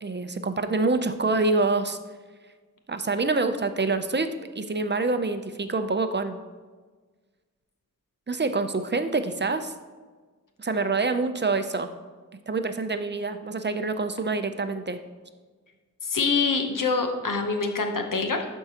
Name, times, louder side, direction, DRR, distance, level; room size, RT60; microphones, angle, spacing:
voice 1, 0.0-2.0 2.9-6.4 8.3-9.7 10.6-11.9 12.5-15.0, right 3 dB, 35° right, 9 dB, 0.5 m, -26 dB
voice 2, 16.0-18.4, left 4 dB, 80° left, 4 dB, 0.9 m, -25 dB
11.5 x 4.6 x 2.8 m, 1.4 s
wide cardioid pair, 60°, 31 cm